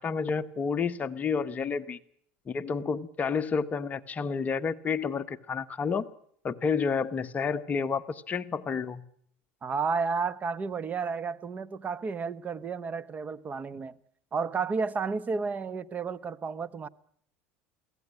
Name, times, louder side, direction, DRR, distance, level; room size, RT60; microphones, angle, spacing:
voice 1, 0.0-2.0 2.5-6.1 6.4-9.0, left 5 dB, 30° left, 1.2 m, -30 dB
voice 2, 9.6-13.9 14.3-16.9, right 5 dB, 30° right, 1.1 m, -32 dB
23.5 x 17.0 x 9.7 m
supercardioid pair, 110°, 6 cm